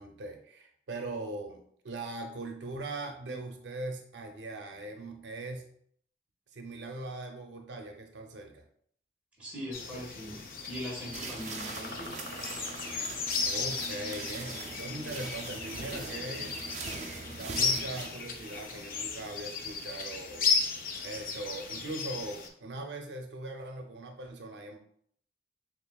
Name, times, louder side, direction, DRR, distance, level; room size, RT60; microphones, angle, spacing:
voice 1, 0.0-5.7 6.5-8.6 13.4-16.5 17.3-20.5 21.0-24.8, right 2 dB, 85° right, 4 dB, 0.5 m, -40 dB
voice 2, 9.4-12.1, equal, 5° right, -6 dB, 1.4 m, -41 dB
sound 1, 9.7-22.5, left 5 dB, 50° left, 0.5 m, -35 dB
sound 2, 11.1-18.1, right 3 dB, 40° right, 0.5 m, -41 dB
6.8 x 2.5 x 2.3 m, 0.64 s
head